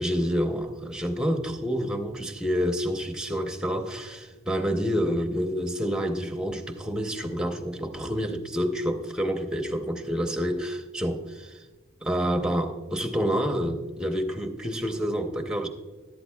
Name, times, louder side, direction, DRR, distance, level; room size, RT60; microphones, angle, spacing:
voice 1, 0.0-11.6 12.0-15.7, equal, 5° right, 0.7 m, -28 dB
12.5 x 11.5 x 2.3 m
head